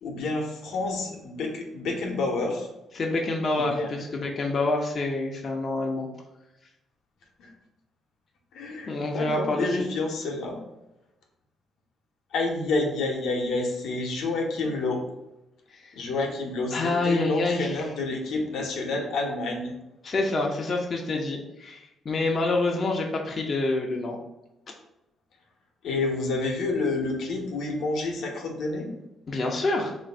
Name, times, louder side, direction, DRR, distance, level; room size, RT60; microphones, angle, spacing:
voice 1, 0.0-2.7 3.6-3.9 7.4-7.5 8.5-10.6 12.3-15.0 15.9-19.7 25.8-28.9, left 3 dB, 80° left, 1 dB, 0.7 m, -29 dB
voice 2, 2.9-6.1 8.9-9.9 15.7-15.9 16.7-17.8 20.0-24.2 29.3-30.0, left 2 dB, 40° left, 0 dB, 0.5 m, -27 dB
3.1 x 2.5 x 4.2 m, 0.91 s
cardioid pair, 90°, 0 cm